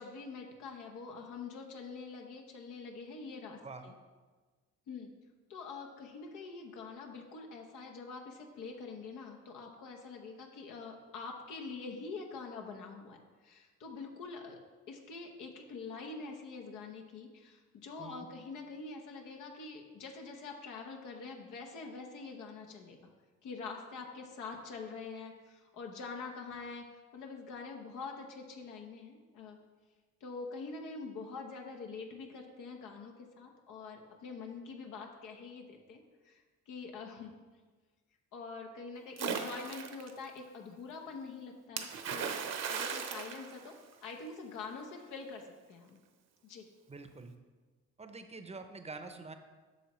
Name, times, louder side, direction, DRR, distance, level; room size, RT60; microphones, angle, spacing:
voice 1, 0.0-3.9 4.9-5.1 5.5-13.2 13.4-14.6 14.9-23.1 23.4-26.8 27.1-29.6 30.2-37.3 38.3-43.7 44.0-45.4 45.7-46.0 46.4-46.7, left 4 dB, 85° left, 1 dB, 0.9 m, -45 dB
Splash splatter, 39.2-40.1 41.8-44.2, right 7 dB, 60° right, 0.8 m, -37 dB
voice 2, 46.9-47.3 48.0-49.3, right 3 dB, 20° right, 8 dB, 0.6 m, -46 dB
8.2 x 6.1 x 3.1 m, 1.3 s
cardioid pair, 90°, 30 cm